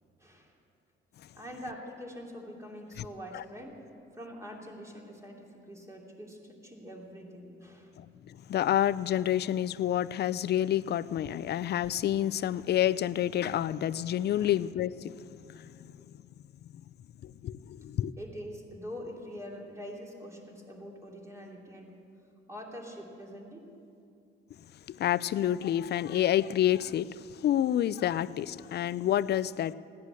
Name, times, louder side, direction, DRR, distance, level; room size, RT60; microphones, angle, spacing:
voice 1, 0.2-0.5 1.4-3.8 4.1-7.9 14.4-14.6 18.2-21.9 22.5-23.7, equal, 15° right, 2.9 m, -44 dB
voice 2, 8.0-15.9 17.2-18.1 24.9-29.7, left 11 dB, 55° left, 0.4 m, -29 dB
16.5 x 10.5 x 8.2 m
cardioid pair, 90°, 20 cm